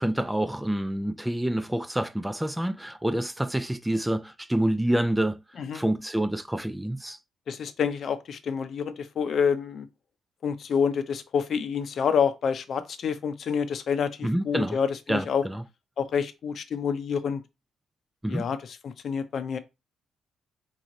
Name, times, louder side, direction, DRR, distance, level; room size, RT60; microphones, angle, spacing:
voice 1, 0.0-5.4 5.7-7.2 14.2-14.8 15.1-15.6 18.2-18.5, right 1 dB, 5° right, 0.4 m, -27 dB
voice 2, 7.5-9.9 10.4-15.4 16.0-17.4 18.3-19.6, left 6 dB, 60° left, 0.6 m, -28 dB
3.9 x 3.0 x 3.9 m
cardioid pair, 90°, 0 cm